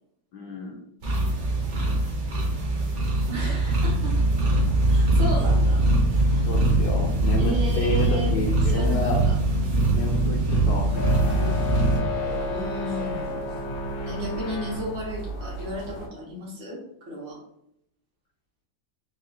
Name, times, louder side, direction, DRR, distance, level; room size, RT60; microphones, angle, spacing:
voice 1, 0.3-0.8 6.4-9.2 9.9-11.6, left 2 dB, 70° left, 0 dB, 1.0 m, -31 dB
sound 1, 1.0-12.0, right 2 dB, 50° right, 1.0 m, -22 dB
voice 2, 1.5-2.0 3.3-4.2 4.9-5.8 6.3-6.5 7.4-8.4 8.7-9.0 12.5-13.3 14.0-17.4, equal, 75° right, -4 dB, 2.0 m, -34 dB
sound 2, 10.9-16.1, left 1 dB, 85° left, 1.5 m, -31 dB
4.6 x 2.3 x 2.9 m, 0.76 s
omnidirectional pair, 2.1 m